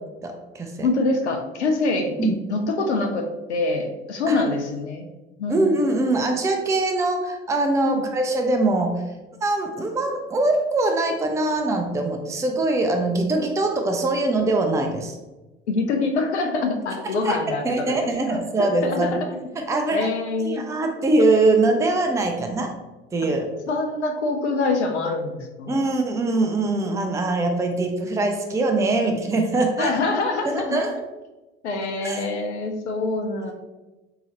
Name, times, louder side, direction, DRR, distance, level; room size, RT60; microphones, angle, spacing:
voice 1, 0.2-0.9 2.2-2.3 4.3-4.4 5.5-9.0 9.4-15.2 17.2-17.4 17.6-19.1 19.7-20.1 20.4-22.7 23.1-23.5 25.7-29.9 30.5-31.0 32.0-32.2 33.4-33.5, right 2 dB, 10° right, 3 dB, 0.5 m, -22 dB
voice 2, 0.8-2.2 2.5-5.1 5.4-5.8 7.9-8.0 15.7-19.4 19.7-20.6 23.7-25.9 29.8-30.8 31.6-33.5, left 3 dB, 85° left, 4 dB, 0.5 m, -25 dB
3.7 x 2.8 x 2.8 m, 1.1 s
figure-of-eight pair, 60°, 33 cm